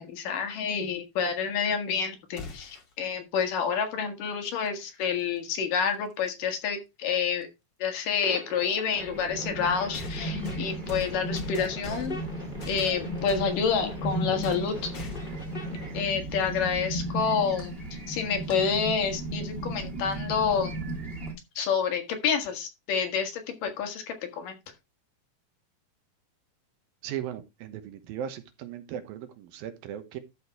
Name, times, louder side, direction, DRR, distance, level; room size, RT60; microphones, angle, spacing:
voice 1, 0.0-7.5 7.8-12.1 12.7-14.9 15.9-17.7 18.1-20.8 21.6-24.6, left 6 dB, 70° left, 5 dB, 3.3 m, -28 dB
sound 1, 2.4-2.9 5.0-5.1 6.3-6.4 9.9-12.3 12.6-13.5 14.4-14.7 14.9-15.4, left 4 dB, 40° left, 1.8 m, -41 dB
sound 2, 8.2-16.0, left 1 dB, 15° left, 3.5 m, -43 dB
sound 3, 9.0-21.3, right 1 dB, 15° right, 2.7 m, -35 dB
voice 2, 27.0-30.2, right 10 dB, 80° right, 10 dB, 2.9 m, -37 dB
12.5 x 5.3 x 4.6 m, 0.25 s
omnidirectional pair, 4.2 m